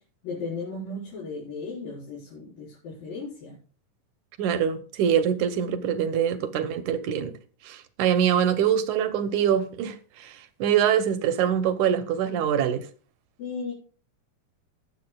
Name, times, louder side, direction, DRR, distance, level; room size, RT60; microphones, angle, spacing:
voice 1, 0.2-3.6 13.4-13.7, left 3 dB, 90° left, 6.2 m, -35 dB
voice 2, 4.4-7.3 7.6-12.8, right 9 dB, 70° right, 2.0 m, -24 dB
21.0 x 7.4 x 2.3 m
omnidirectional pair, 3.9 m